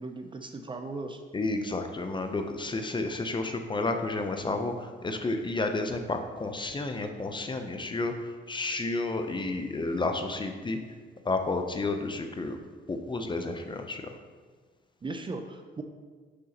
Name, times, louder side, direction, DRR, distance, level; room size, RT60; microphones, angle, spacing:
voice 1, 0.0-1.2 15.0-15.8, right 3 dB, 25° right, 6 dB, 0.5 m, -37 dB
voice 2, 1.3-10.8 11.2-12.6 12.9-14.2, left 2 dB, 25° left, 6 dB, 0.5 m, -31 dB
6.4 x 5.5 x 2.9 m, 1.5 s
cardioid pair, 90°, 20 cm